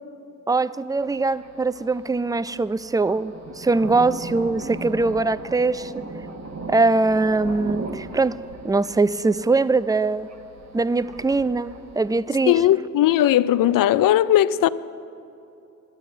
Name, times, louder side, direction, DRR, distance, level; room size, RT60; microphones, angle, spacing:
voice 1, 0.5-5.9 6.7-8.3 8.6-10.3 10.7-12.5, right 3 dB, 10° right, 0.4 m, -22 dB
Thunder, 0.9-12.2, right 3 dB, 50° right, 1.4 m, -38 dB
voice 2, 12.5-14.7, left 12 dB, 70° left, 0.5 m, -18 dB
11.0 x 9.0 x 8.8 m
supercardioid pair, 45°, 35 cm